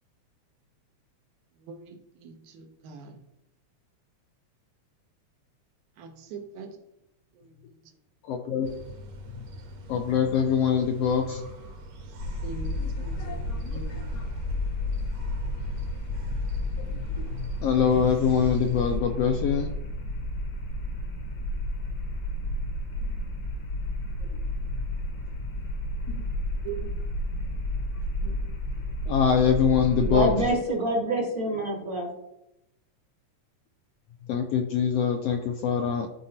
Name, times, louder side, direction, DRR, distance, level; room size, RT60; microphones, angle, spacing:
voice 1, 1.6-3.2 6.0-6.8 7.3-8.0 11.9-14.1 26.6-26.8, right 5 dB, 85° right, 2.4 m, -43 dB
voice 2, 8.3-8.7 9.9-11.4 13.2-13.6 16.8-19.7 24.2-24.3 26.1-26.3 28.2-28.4 29.1-30.3 34.3-36.1, left 7 dB, 80° left, 1.5 m, -24 dB
sound 1, 8.6-19.0, right 1 dB, 65° right, 2.1 m, -44 dB
sound 2, 12.2-30.5, left 1 dB, 60° left, 1.3 m, -31 dB
voice 3, 30.0-32.1, right 1 dB, 50° right, 1.1 m, -26 dB
13.0 x 4.8 x 2.9 m
omnidirectional pair, 3.4 m